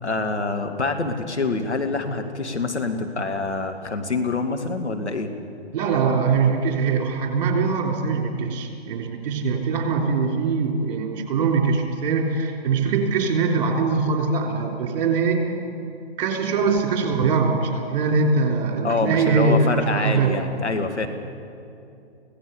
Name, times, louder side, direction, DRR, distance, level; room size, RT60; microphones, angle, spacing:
voice 1, 0.0-5.3 18.8-21.1, left 3 dB, 85° left, 4 dB, 2.3 m, -26 dB
voice 2, 5.7-15.4 16.2-20.4, right 4 dB, 40° right, 2 dB, 3.7 m, -22 dB
24.5 x 17.0 x 7.0 m, 2.6 s
figure-of-eight pair, 130°, 33 cm